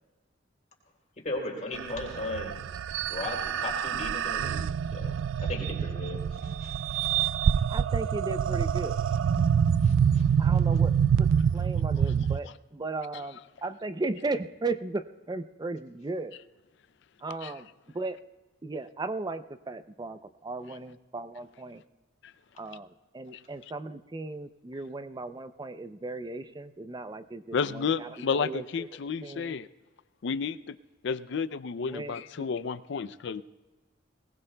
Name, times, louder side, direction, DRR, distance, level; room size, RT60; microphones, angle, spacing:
voice 1, 1.2-2.5 2.9-7.0 9.8-10.2, left 2 dB, 40° left, -1 dB, 3.4 m, -37 dB
sound 1, 1.8-12.4, right 7 dB, 90° right, 0.3 m, -26 dB
voice 2, 7.7-9.0 10.4-10.9 11.2-16.4 17.2-17.7 17.9-18.2 18.6-21.8 22.6-22.9 23.1-28.9 29.2-29.6 31.8-32.6, right 3 dB, 20° right, 11 dB, 0.5 m, -36 dB
voice 3, 27.5-29.7 30.2-30.8 31.0-33.4, left 5 dB, 65° left, 15 dB, 0.4 m, -31 dB
21.5 x 19.5 x 2.3 m, 1.2 s
head